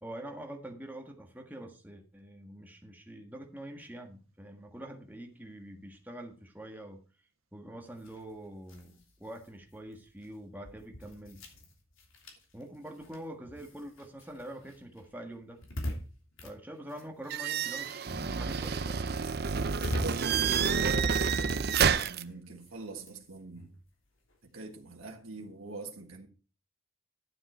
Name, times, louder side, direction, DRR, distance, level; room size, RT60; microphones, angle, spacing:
voice 1, 0.0-7.0 7.5-11.4 12.5-15.6 16.4-19.0, right 1 dB, 10° right, 1.6 m, -45 dB
sound 1, 7.9-17.8 18.1-25.0, equal, 70° left, 3.1 m, -45 dB
sound 2, 17.3-22.2, right 6 dB, 50° right, 0.6 m, -29 dB
voice 2, 19.7-23.7 24.4-26.3, right 3 dB, 75° right, 1.6 m, -43 dB
12.0 x 7.4 x 4.4 m
head